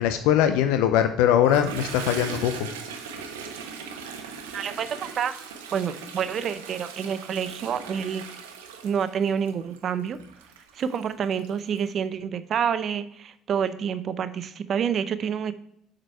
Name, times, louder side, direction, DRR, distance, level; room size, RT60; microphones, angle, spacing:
voice 1, 0.0-2.5, left 10 dB, 70° left, 8 dB, 0.5 m, -21 dB
Toilet flush, 1.3-11.9, right 6 dB, 80° right, 0.8 m, -39 dB
voice 2, 4.5-5.3 5.7-8.2 8.8-10.2 10.7-15.5, right 7 dB, 50° right, 12 dB, 0.6 m, -28 dB
7.4 x 5.1 x 4.5 m, 0.71 s
hypercardioid pair, 55°, 0 cm